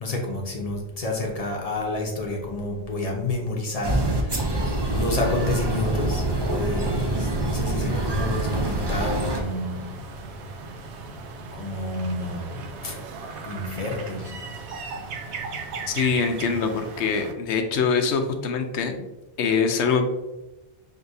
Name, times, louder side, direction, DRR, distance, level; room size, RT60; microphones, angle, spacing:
voice 1, 0.0-9.9 11.5-13.0 13.4-14.3, left 2 dB, 40° left, 1 dB, 0.7 m, -30 dB
sound 1, 3.8-9.4, right 1 dB, 35° right, 0.4 m, -25 dB
sound 2, 7.9-17.3, right 4 dB, 80° right, 0.9 m, -37 dB
voice 2, 15.9-19.1 19.4-20.1, left 5 dB, 85° left, 5 dB, 0.9 m, -24 dB
6.2 x 2.6 x 2.6 m, 1.0 s
omnidirectional pair, 1.1 m